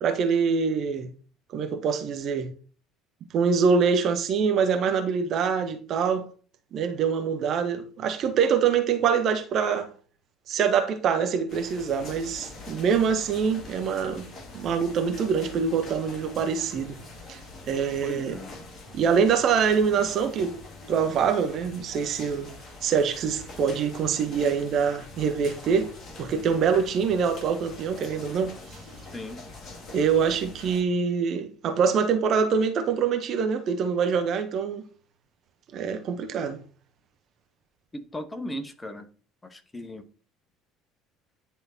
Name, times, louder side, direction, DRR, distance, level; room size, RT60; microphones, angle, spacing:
voice 1, 0.0-1.1 1.5-2.5 3.3-6.3 6.7-9.9 10.5-14.3 14.5-17.0 17.3-17.4 17.7-18.4 18.9-20.5 20.9-22.5 22.8-25.9 26.2-28.5 29.9-34.8 35.7-36.6, right 6 dB, 45° right, 0.9 m, -24 dB
sound 1, 11.5-30.8, left 2 dB, 35° left, 2.3 m, -44 dB
voice 2, 18.0-18.5 29.1-29.4 37.9-39.1 39.4-40.0, left 1 dB, 15° left, 1.0 m, -37 dB
10.0 x 3.7 x 2.8 m
figure-of-eight pair, 60°, 0 cm